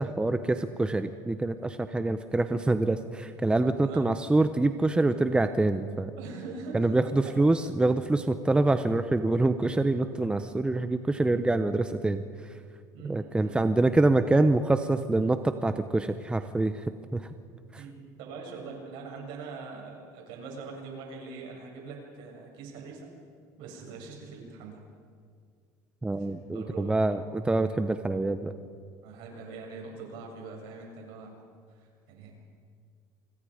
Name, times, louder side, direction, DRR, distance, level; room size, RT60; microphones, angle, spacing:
voice 1, 0.0-6.1 6.7-12.5 13.0-16.8 17.1-17.3 17.7-17.8 26.0-28.5, right 2 dB, 10° right, 9 dB, 1.0 m, -26 dB
voice 2, 3.8-4.2 6.2-7.4 12.9-13.1 13.4-13.6 17.7-23.1 23.6-24.8 26.2-27.3 29.0-31.4 31.7-32.3, right 4 dB, 70° right, 0 dB, 7.6 m, -43 dB
27.5 x 25.5 x 5.1 m, 2.1 s
supercardioid pair, 95°, 9 cm